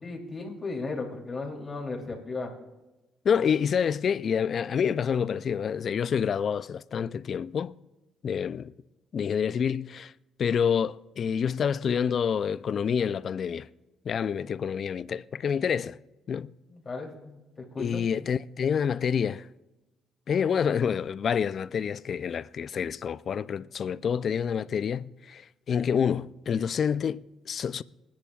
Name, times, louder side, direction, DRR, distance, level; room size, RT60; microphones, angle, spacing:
voice 1, 0.0-2.5 16.7-18.0, left 3 dB, 35° left, 3.0 m, -36 dB
voice 2, 3.2-7.7 8.2-8.7 9.1-10.1 10.4-13.7 14.0-16.0 16.3-16.5 17.8-19.5 20.3-27.8, left 7 dB, 55° left, 0.3 m, -28 dB
28.5 x 10.5 x 2.4 m
cardioid pair, 90°, 0 cm